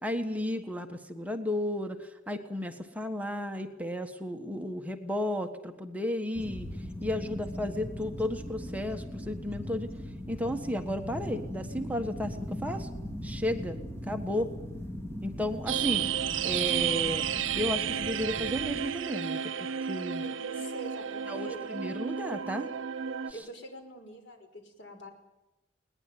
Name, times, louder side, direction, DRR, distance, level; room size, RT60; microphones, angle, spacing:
voice 1, 0.0-6.7 7.0-9.9 10.3-12.9 13.2-13.8 14.1-14.5 15.2-16.1 16.4-17.2 17.6-20.2 21.3-22.7, left 1 dB, 10° right, 5 dB, 1.5 m, -33 dB
sound 1, 6.3-18.9, left 1 dB, 15° left, 3.0 m, -39 dB
sound 2, 15.7-23.3, right 8 dB, 90° right, 0.8 m, -32 dB
voice 2, 20.2-21.6 23.3-25.1, right 2 dB, 65° left, 5 dB, 5.3 m, -44 dB
21.0 x 20.0 x 9.5 m, 0.95 s
head